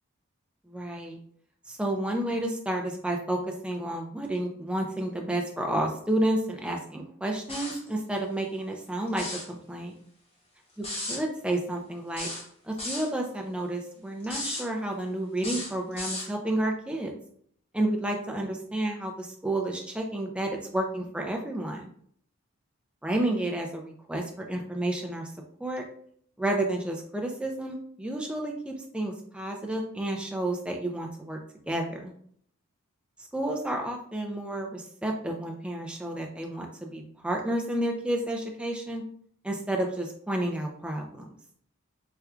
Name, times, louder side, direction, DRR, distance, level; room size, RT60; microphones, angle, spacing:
voice 1, 0.7-1.2 1.7-9.9 10.8-12.3 12.6-17.1 17.7-21.9 23.0-25.3 25.6-25.8 26.4-31.4 31.7-32.1 33.3-39.0 39.4-41.3, right 1 dB, 5° right, 1 dB, 0.3 m, -31 dB
sound 1, 7.5-7.9 9.1-9.5 10.8-11.2 12.2-13.1 14.2-14.7 15.4-16.3, left 2 dB, 25° left, 0.8 m, -35 dB
4.3 x 2.3 x 2.4 m, 0.63 s
head